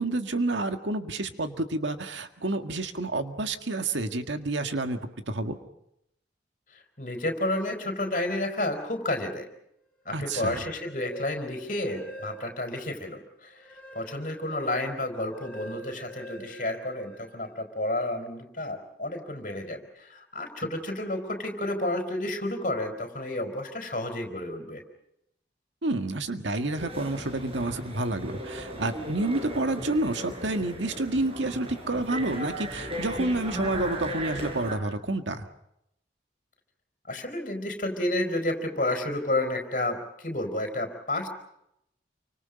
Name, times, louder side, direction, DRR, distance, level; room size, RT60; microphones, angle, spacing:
voice 1, 0.0-5.6 10.1-10.6 25.8-35.5, right 2 dB, 90° right, 7 dB, 1.8 m, -29 dB
voice 2, 6.7-9.5 10.0-24.8 37.1-41.3, left 1 dB, 45° left, 4 dB, 4.5 m, -31 dB
sound 1, 10.1-12.8 13.2-17.5, left 1 dB, 10° left, 5.9 m, -44 dB
sound 2, 26.8-34.8, equal, 35° right, 4.9 m, -37 dB
28.5 x 25.0 x 5.2 m, 0.78 s
head